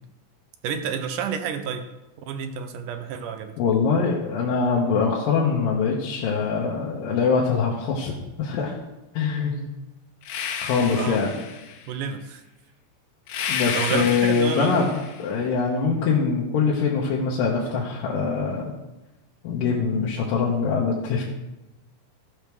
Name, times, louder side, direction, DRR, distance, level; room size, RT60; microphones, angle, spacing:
voice 1, 0.6-1.9 2.3-3.5 10.9-11.3 11.9-12.4 13.7-14.9, right 7 dB, 70° right, 7 dB, 2.1 m, -30 dB
voice 2, 3.6-8.1 8.4-8.8 9.1-9.7 10.6-11.4 13.5-18.7 19.4-21.2, left 5 dB, 75° left, -4 dB, 2.8 m, -23 dB
sound 1, 10.2-11.9 13.3-15.3, left 7 dB, 90° left, 2.9 m, -31 dB
14.5 x 5.2 x 6.2 m, 1.0 s
omnidirectional pair, 4.2 m